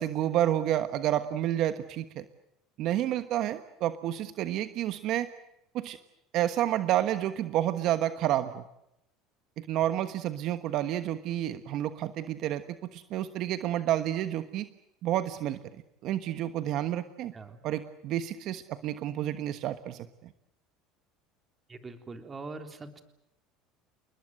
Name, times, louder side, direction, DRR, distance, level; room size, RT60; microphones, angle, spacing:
voice 1, 0.0-2.2 2.8-5.3 5.7-6.0 6.3-8.6 9.6-12.6 12.9-14.7 15.0-15.6 16.0-17.3 17.6-20.1, right 12 dB, 55° right, 10 dB, 1.3 m, -29 dB
voice 2, 21.7-23.0, right 3 dB, 20° right, 7 dB, 3.5 m, -42 dB
29.0 x 20.5 x 7.9 m, 0.83 s
supercardioid pair, 125°, 0 cm